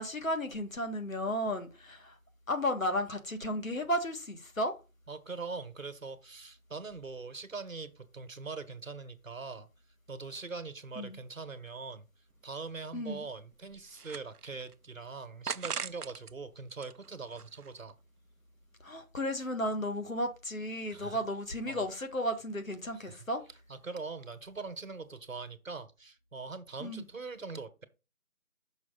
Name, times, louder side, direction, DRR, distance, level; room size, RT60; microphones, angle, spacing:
voice 1, 0.0-2.1 2.5-4.7 11.0-11.2 12.9-13.2 18.8-23.4 26.8-27.0, equal, 60° left, 1.6 m, -34 dB
voice 2, 5.1-9.7 10.1-12.1 12.4-17.9 20.9-21.2 21.7-21.8 22.9-23.3 23.7-27.9, right 4 dB, 60° right, 1.3 m, -42 dB
sound 1, 12.3-12.4 12.7-12.8 13.4-14.7 15.5-16.3 16.7-17.9, right 7 dB, 90° right, 0.6 m, -40 dB
6.1 x 5.3 x 3.9 m
figure-of-eight pair, 175°, 45 cm